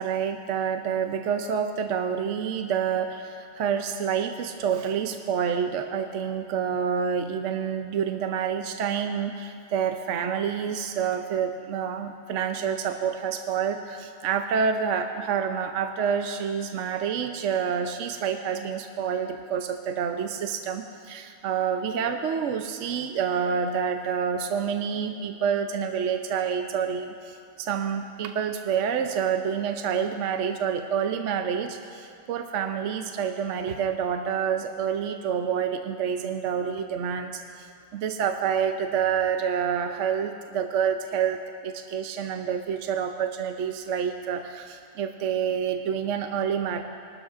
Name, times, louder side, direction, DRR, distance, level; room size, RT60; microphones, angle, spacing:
voice 1, 0.0-46.8, right 7 dB, 65° right, 6 dB, 0.8 m, -28 dB
21.5 x 12.5 x 2.5 m, 2.4 s
omnidirectional pair, 1.6 m